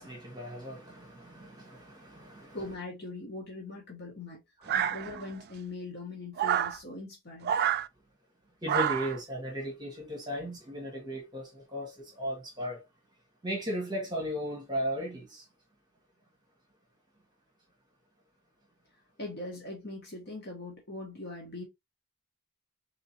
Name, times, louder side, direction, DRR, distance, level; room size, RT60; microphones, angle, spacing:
voice 1, 0.0-2.6 4.6-4.9 8.6-12.8 13.4-15.4, equal, 20° right, 1.6 m, -36 dB
voice 2, 2.5-4.4 4.7-7.6 19.2-21.6, left 2 dB, 50° left, 1.3 m, -41 dB
sound 1, 4.7-5.4 6.4-6.8 7.4-7.9 8.7-9.2, right 9 dB, 50° right, 0.3 m, -28 dB
3.8 x 3.7 x 2.9 m
head